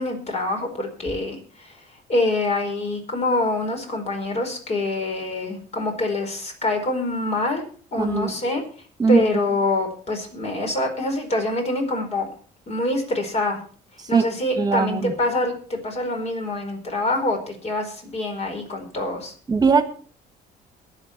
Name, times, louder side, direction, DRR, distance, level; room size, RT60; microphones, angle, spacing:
voice 1, 0.0-1.7 2.1-7.6 7.9-8.6 9.1-12.3 12.7-13.6 14.1-19.3, left 2 dB, 40° left, 4 dB, 4.6 m, -25 dB
voice 2, 8.0-8.3 9.0-9.2 14.1-14.3 14.6-15.1 19.5-19.8, right 4 dB, 25° right, 10 dB, 1.6 m, -19 dB
22.0 x 7.6 x 4.4 m, 0.44 s
cardioid pair, 110°, 17 cm